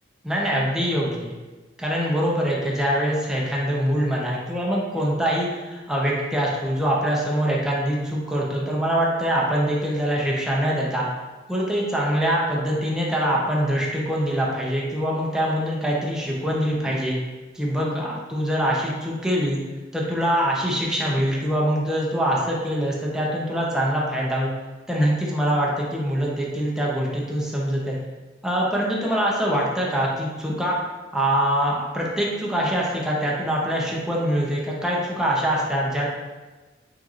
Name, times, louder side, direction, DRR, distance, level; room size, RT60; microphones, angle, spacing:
voice 1, 0.2-1.3 1.8-11.1 11.5-17.2 17.5-19.6 19.9-24.5 24.9-28.0 28.4-30.8 31.1-36.1, equal, 5° right, -4 dB, 0.6 m, -24 dB
4.5 x 3.8 x 2.4 m, 1.2 s
head